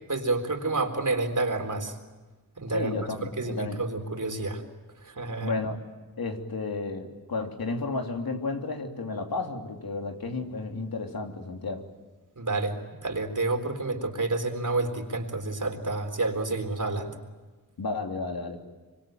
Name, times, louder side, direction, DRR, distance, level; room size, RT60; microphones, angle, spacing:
voice 1, 0.1-2.0 2.6-4.6 5.0-5.5 12.4-17.1, right 2 dB, 60° right, 5 dB, 4.0 m, -29 dB
voice 2, 2.7-3.8 5.4-5.8 6.2-11.8 17.8-18.7, left 3 dB, 90° left, 3 dB, 3.2 m, -32 dB
25.5 x 25.0 x 9.1 m, 1.3 s
wide cardioid pair, 70°, 35 cm